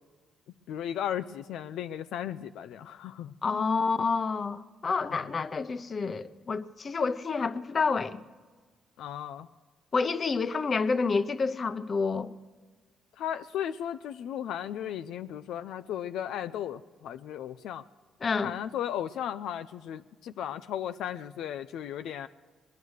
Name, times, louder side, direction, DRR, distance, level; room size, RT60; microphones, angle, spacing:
voice 1, 0.7-3.7 5.1-5.2 9.0-9.5 13.2-17.8 18.3-22.3, left 10 dB, 80° left, 0.4 m, -35 dB
voice 2, 3.4-8.2 9.9-12.3 18.2-18.5, left 4 dB, 40° left, 0.7 m, -28 dB
21.0 x 11.0 x 6.4 m
cardioid pair, 90°, 0 cm